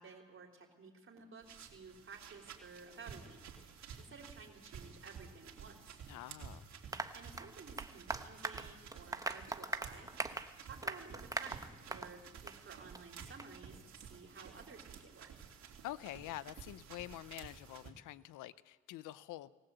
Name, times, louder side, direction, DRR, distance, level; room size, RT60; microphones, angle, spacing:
voice 1, 0.0-5.8 7.1-10.3 10.6-15.3, right 4 dB, 45° right, 4.1 m, -54 dB
sound 1, 1.4-17.9, right 6 dB, 60° right, 3.1 m, -53 dB
voice 2, 6.1-6.6 15.8-19.5, left 14 dB, 85° left, 0.7 m, -47 dB
Applause, 6.9-12.1 12.5-12.6 12.9-13.0 13.4-13.5, right 2 dB, 10° right, 1.0 m, -41 dB
19.0 x 19.0 x 8.0 m
cardioid pair, 90°, 30 cm